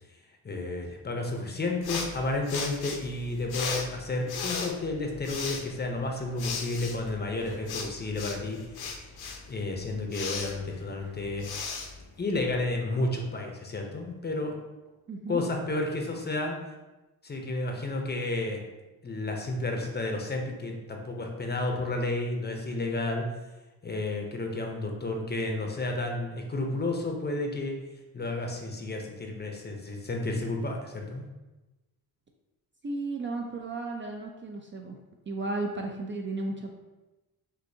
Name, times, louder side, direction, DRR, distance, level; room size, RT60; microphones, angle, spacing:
voice 1, 0.4-9.0 9.5-11.4 12.2-14.5 15.3-16.6 17.2-18.6 19.0-23.2 23.8-27.7 28.1-31.2, left 2 dB, 25° left, 2 dB, 0.6 m, -31 dB
sound 1, 1.8-12.8, left 5 dB, 70° left, 0.7 m, -37 dB
voice 2, 15.1-15.4 32.8-35.0 35.3-36.7, right 2 dB, 30° right, 1 dB, 0.4 m, -34 dB
6.4 x 2.6 x 2.7 m, 1.1 s
cardioid pair, 120°, 38 cm